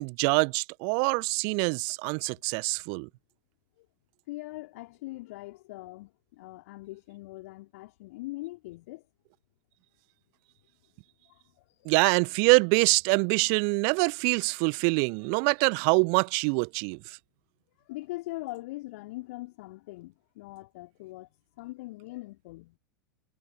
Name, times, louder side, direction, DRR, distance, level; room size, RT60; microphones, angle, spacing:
voice 1, 0.0-3.1 11.8-17.0, right 40 dB or more, 40° right, 1.4 m, -25 dB
voice 2, 4.3-9.1 11.3-11.9 15.2-15.5 17.8-21.3 21.6-22.8, left 20 dB, 50° left, 4.1 m, -42 dB
figure-of-eight pair, 95°, 11 cm